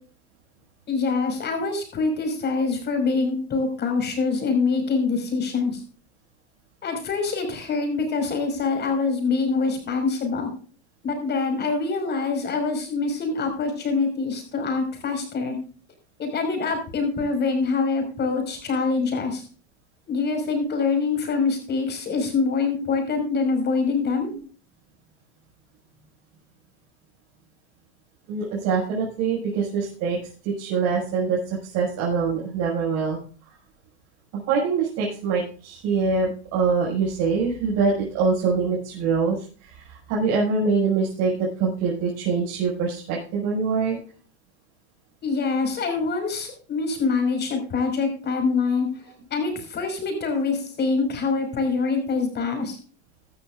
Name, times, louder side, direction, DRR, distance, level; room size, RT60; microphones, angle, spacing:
voice 1, 0.9-5.8 6.8-10.5 11.0-15.6 16.2-19.4 20.1-24.3 45.2-48.9 49.3-52.8, left 4 dB, 30° left, 5 dB, 5.4 m, -25 dB
voice 2, 9.7-10.0 18.1-18.4 24.3-24.4 28.3-30.2 30.4-33.2 34.3-44.0, right 5 dB, 50° right, -4 dB, 6.0 m, -24 dB
16.0 x 12.5 x 2.5 m, 0.40 s
supercardioid pair, 115°, 33 cm